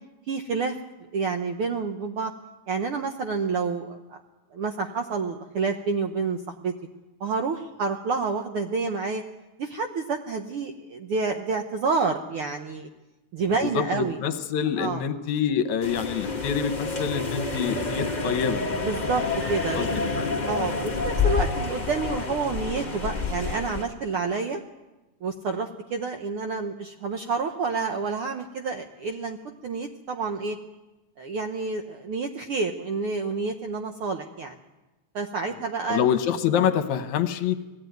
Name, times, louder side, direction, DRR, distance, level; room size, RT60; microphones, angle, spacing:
voice 1, 0.3-0.8 1.1-2.3 2.7-4.2 4.5-6.7 7.2-9.2 9.6-12.9 13.3-14.2 14.8-15.0 18.8-19.2 19.5-19.8 20.5-24.6 25.2-29.4 29.6-30.6 31.2-34.6 35.1-36.1, right 4 dB, 70° right, 5 dB, 1.3 m, -29 dB
voice 2, 13.6-18.9 19.8-19.9 20.2-20.7 35.9-37.6, left 8 dB, 70° left, 10 dB, 2.3 m, -26 dB
sound 1, 15.8-23.8, left 4 dB, 25° left, 0.9 m, -28 dB
19.0 x 15.0 x 9.2 m, 1.1 s
omnidirectional pair, 3.6 m